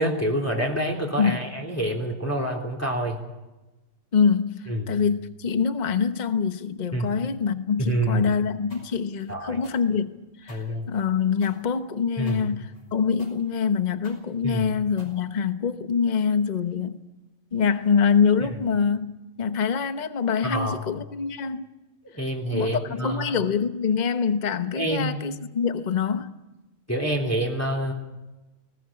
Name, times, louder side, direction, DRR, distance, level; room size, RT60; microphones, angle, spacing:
voice 1, 0.0-3.2 4.7-4.9 6.9-7.1 7.8-8.3 9.3-9.6 10.5-10.9 12.2-12.4 14.4-14.7 20.4-20.8 22.1-23.4 24.7-25.2 26.9-27.9, right 1 dB, 10° left, 3.3 m, -27 dB
voice 2, 4.1-10.1 10.4-10.6 10.9-17.0 17.5-19.1 19.4-21.6 22.5-26.3, left 6 dB, 35° left, 1.1 m, -25 dB
sound 1, 8.7-15.8, left 1 dB, 60° left, 6.2 m, -51 dB
20.0 x 18.5 x 8.6 m
omnidirectional pair, 1.4 m